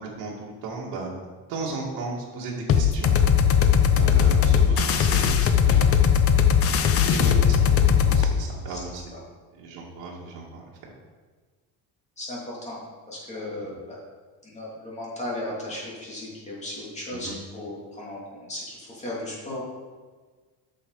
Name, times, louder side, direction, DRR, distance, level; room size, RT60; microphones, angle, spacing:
voice 1, 0.2-1.1 1.5-3.2 4.0-5.8 6.6-9.0 9.6-10.7 13.6-13.7 17.1-17.4, right 3 dB, 60° right, -4 dB, 2.3 m, -35 dB
sound 1, 2.7-8.3, left 7 dB, 35° left, 0.6 m, -19 dB
voice 2, 8.7-9.2 12.2-12.8 13.1-14.0 14.4-19.6, left 1 dB, 15° left, -5 dB, 2.7 m, -36 dB
8.4 x 6.5 x 4.8 m, 1.4 s
cardioid pair, 155°, 41 cm